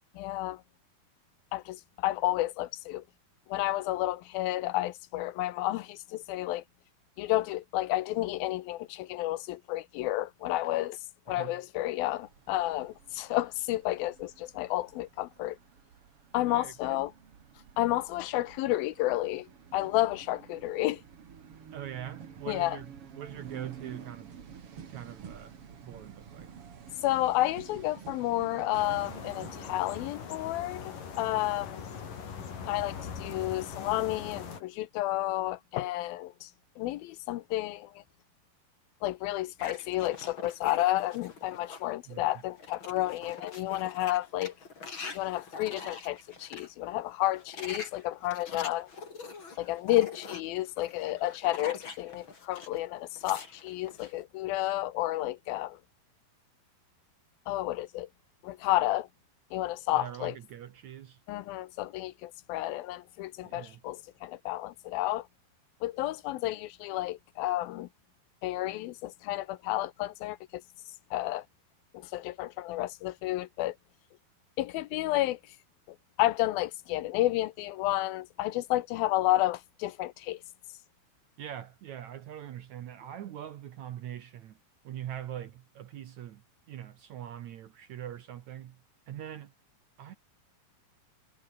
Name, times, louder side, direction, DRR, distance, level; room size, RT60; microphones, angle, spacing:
voice 1, 0.2-0.6 1.5-3.0 3.5-6.6 7.2-11.0 11.3-15.6 16.3-17.1 17.8-21.0 22.5-22.8 27.0-31.8 32.7-36.5 36.8-38.0 39.0-44.5 45.1-48.9 49.6-55.8 57.5-58.1 58.4-59.1 59.5-60.3 61.3-65.3 65.8-67.9 68.4-70.6 71.1-71.5 71.9-73.8 74.6-75.4 76.2-80.4, left 16 dB, 75° left, 2.5 m, -31 dB
voice 2, 11.3-11.6 16.5-17.0 21.7-24.4 24.9-26.5 42.1-42.3 59.9-61.2 63.4-63.8 81.4-84.6 84.8-89.5 90.0-90.2, right 11 dB, 65° right, 2.0 m, -43 dB
sound 1, 12.0-30.1, right 7 dB, 40° right, 2.7 m, -50 dB
sound 2, 28.7-34.6, left 6 dB, 60° left, 5.2 m, -41 dB
sound 3, 39.6-41.9 42.3-46.7 47.3-52.8 53.1-54.1, left 4 dB, 30° left, 4.0 m, -44 dB
omnidirectional pair, 4.5 m